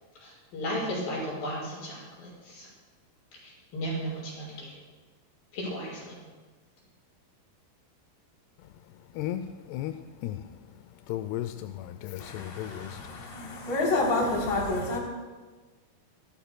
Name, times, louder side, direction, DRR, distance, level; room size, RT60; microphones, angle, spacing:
voice 1, 0.2-2.7 3.4-4.7 5.5-6.2, equal, 60° left, -8 dB, 7.6 m, -35 dB
voice 2, 9.1-10.5 11.1-13.0 13.5-13.7, left 12 dB, 90° left, 9 dB, 2.6 m, -35 dB
voice 3, 12.2-15.0, left 2 dB, 30° left, -3 dB, 3.6 m, -29 dB
25.5 x 15.5 x 2.2 m, 1.3 s
omnidirectional pair, 4.7 m